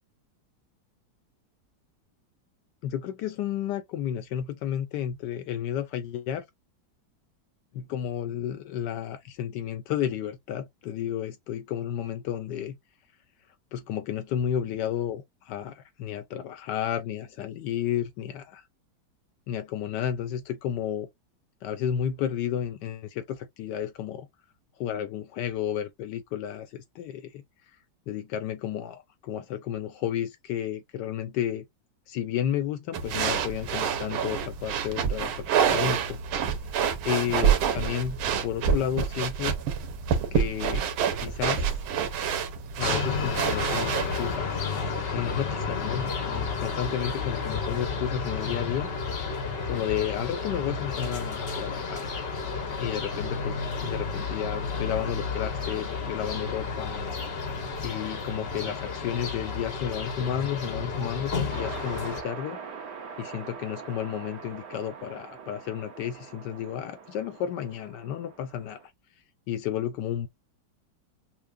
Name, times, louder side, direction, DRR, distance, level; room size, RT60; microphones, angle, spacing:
voice 1, 2.8-6.5 7.7-12.8 13.7-18.6 19.5-21.1 21.6-24.3 24.8-27.4 28.1-31.7 32.1-36.2 37.0-39.5 40.3-40.9 41.2-41.7 42.8-44.6 45.1-48.9 49.6-52.1 52.8-57.0 57.8-62.6 63.2-68.8 69.5-70.3, left 10 dB, 75° left, 1.0 m, -32 dB
sound 1, 32.9-44.4, right 7 dB, 85° right, 1.6 m, -27 dB
sound 2, 42.8-62.2, left 4 dB, 55° left, 0.6 m, -32 dB
sound 3, 61.5-68.9, right 6 dB, 60° right, 1.5 m, -43 dB
5.8 x 2.0 x 2.4 m
omnidirectional pair, 2.2 m